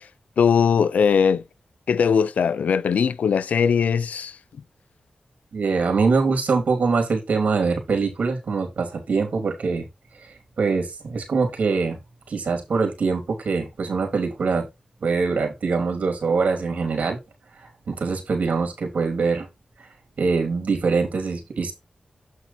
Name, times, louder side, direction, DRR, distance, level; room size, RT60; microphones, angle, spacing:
voice 1, 0.4-1.4 1.9-4.3, left 6 dB, 90° left, 0.5 m, -20 dB
voice 2, 5.5-9.9 10.6-12.0 12.3-14.6 15.0-17.2 17.9-19.5 20.2-21.7, right 4 dB, 80° right, 3.1 m, -23 dB
8.4 x 4.5 x 4.3 m
cardioid pair, 55°, 2 cm